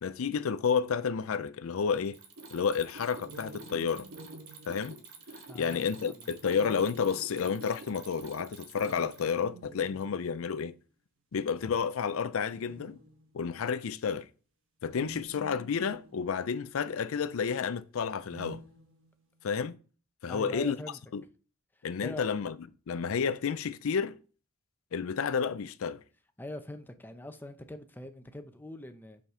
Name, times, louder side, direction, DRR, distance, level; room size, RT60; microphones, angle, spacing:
voice 1, 0.0-2.2 2.5-4.1 4.7-5.0 5.5-10.7 11.3-13.0 13.3-14.3 14.8-18.6 19.4-19.8 20.2-20.8 21.1-21.2 21.8-22.6 22.9-24.2 24.9-26.0, left 6 dB, 70° left, 0.4 m, -31 dB
Mechanisms, 2.0-9.4, right 3 dB, 85° right, 1.5 m, -48 dB
sound 1, 3.2-5.6 6.5-7.8 8.7-10.6 11.4-11.5 12.5-13.5 14.8-16.6 18.2-19.4, right 2 dB, 65° right, 1.3 m, -51 dB
voice 2, 5.4-6.3 20.3-21.0 22.0-22.3 26.4-29.2, left 1 dB, 10° left, 0.6 m, -43 dB
5.9 x 5.6 x 4.9 m
head